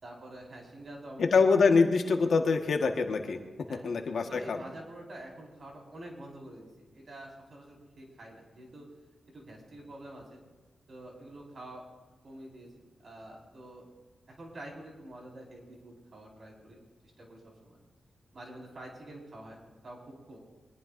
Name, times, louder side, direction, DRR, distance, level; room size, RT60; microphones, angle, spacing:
voice 1, 0.0-1.4 3.7-3.9 4.3-8.8 9.3-10.4 10.9-11.8 12.2-13.9 14.3-16.8 17.2-17.8 18.3-20.4, right 1 dB, 45° right, -1 dB, 4.8 m, -47 dB
voice 2, 1.2-3.4 3.7-4.6, left 4 dB, 65° left, 4 dB, 1.4 m, -25 dB
24.0 x 20.5 x 2.6 m, 1.2 s
wide cardioid pair, 170°, 0 cm